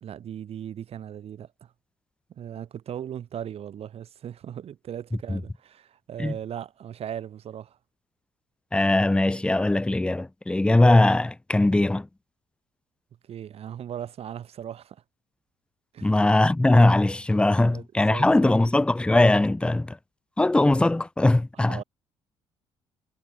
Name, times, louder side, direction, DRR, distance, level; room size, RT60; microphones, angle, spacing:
voice 1, 0.0-1.7 2.3-7.8 13.3-15.0 15.9-16.2 17.6-17.8 18.1-18.6 21.7-21.8, right 9 dB, 45° right, 0.7 m, -38 dB
voice 2, 8.7-12.1 16.0-20.0 20.4-21.8, left 2 dB, 5° left, 0.4 m, -20 dB
figure-of-eight pair, 50°, 14 cm